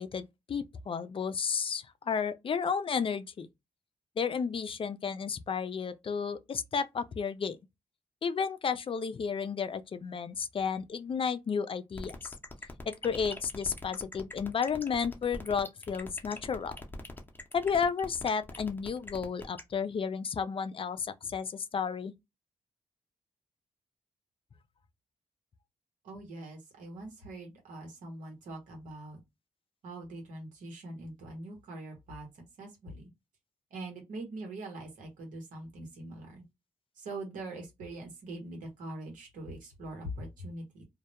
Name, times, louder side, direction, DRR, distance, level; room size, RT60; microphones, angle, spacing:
voice 1, 0.0-3.5 4.2-7.6 8.2-12.1 12.9-16.8 17.5-22.1, left 6 dB, 45° left, 0.3 m, -32 dB
sound 1, 12.0-19.6, left 2 dB, 15° left, 0.7 m, -43 dB
voice 2, 26.0-29.2 29.8-33.1 33.7-36.4 37.0-40.8, right 1 dB, 85° right, 1.0 m, -43 dB
2.2 x 2.0 x 2.8 m
supercardioid pair, 55°, 13 cm